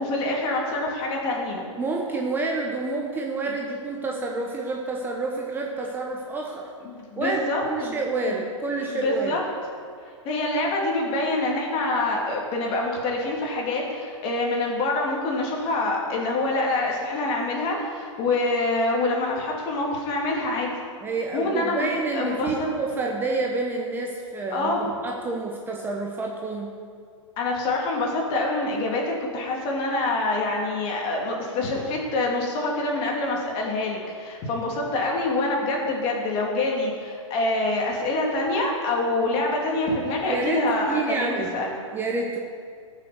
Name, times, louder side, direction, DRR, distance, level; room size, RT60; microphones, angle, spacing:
voice 1, 0.0-1.6 6.8-8.0 8.3-8.4 8.8-9.4 10.0-20.7 21.3-21.9 22.1-22.7 24.5-24.9 27.4-41.7, left 2 dB, 35° left, -1 dB, 2.7 m, -26 dB
voice 2, 1.8-6.7 7.2-9.4 21.0-26.7 40.3-41.6 41.9-42.4, right 3 dB, 10° right, 0 dB, 1.0 m, -28 dB
14.5 x 6.6 x 7.0 m, 2.2 s
hypercardioid pair, 140°, 16 cm